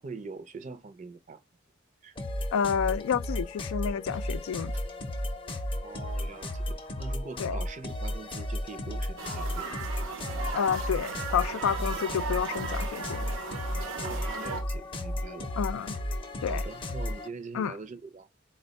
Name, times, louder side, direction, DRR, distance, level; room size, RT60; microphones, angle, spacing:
voice 1, 0.0-1.4 2.0-2.2 4.7-4.8 5.8-9.7 9.9-10.0 13.9-15.5 16.5-18.3, right 4 dB, 35° right, 0.5 m, -43 dB
sound 1, 2.2-17.3, left 1 dB, 25° left, 0.6 m, -34 dB
voice 2, 2.5-4.7 7.4-7.6 10.5-13.3 15.6-16.0 16.4-16.6 17.5-17.7, left 7 dB, 85° left, 0.3 m, -29 dB
china town sample, 9.2-14.6, right 4 dB, 75° right, 0.9 m, -37 dB
4.2 x 2.2 x 4.0 m
head